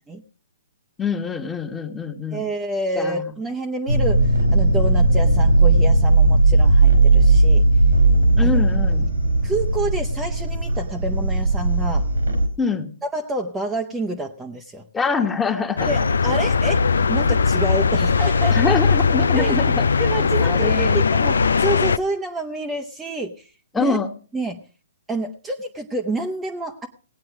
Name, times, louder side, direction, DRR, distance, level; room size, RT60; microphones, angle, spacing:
voice 1, 1.0-2.4 2.9-3.3 8.4-9.1 12.6-12.9 14.9-16.0 18.5-19.9 20.2-21.0 23.7-24.1, left 4 dB, 10° left, 5 dB, 1.4 m, -24 dB
voice 2, 2.3-7.6 8.4-8.6 9.4-12.1 13.0-14.8 15.9-18.7 19.3-19.6 20.0-24.0 24.3-24.6 25.1-26.9, right 2 dB, 10° right, 2 dB, 0.9 m, -28 dB
sound 1, 3.9-12.5, right 2 dB, 90° right, 3.2 m, -17 dB
sound 2, 15.8-22.0, left 5 dB, 80° left, 0.5 m, -19 dB
18.5 x 8.6 x 4.8 m, 0.40 s
hypercardioid pair, 135°, 0 cm